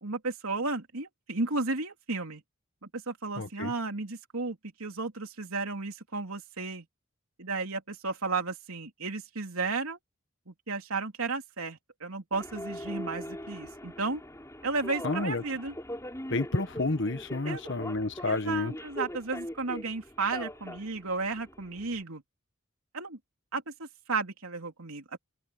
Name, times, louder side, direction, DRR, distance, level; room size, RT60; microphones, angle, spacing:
voice 1, 0.0-2.4 2.8-6.8 7.4-10.0 10.5-14.2 14.6-15.7 17.5-17.7 18.2-22.2 22.9-23.2 23.5-25.2, right 3 dB, 90° right, 3.3 m, -34 dB
voice 2, 3.4-3.7 15.0-15.4 16.3-18.7, left 2 dB, 60° left, 1.5 m, -30 dB
Subway metro underground, 12.3-22.0, left 1 dB, 15° left, 7.5 m, -41 dB
open air
head